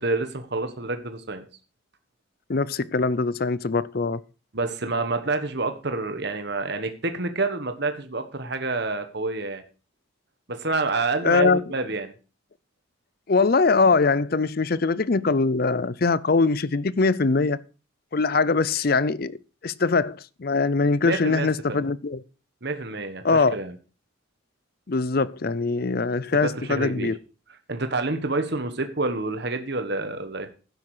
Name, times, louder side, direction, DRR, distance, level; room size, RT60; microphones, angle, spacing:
voice 1, 0.0-1.4 4.5-9.6 10.5-12.1 21.0-21.8 22.6-23.7 26.4-27.1 27.7-30.5, right 3 dB, 55° right, 1.3 m, -28 dB
voice 2, 2.5-4.2 11.2-11.6 13.3-17.6 18.1-19.4 19.6-22.2 23.2-23.6 24.9-27.2, left 4 dB, 45° left, 0.5 m, -22 dB
12.0 x 9.7 x 4.9 m
head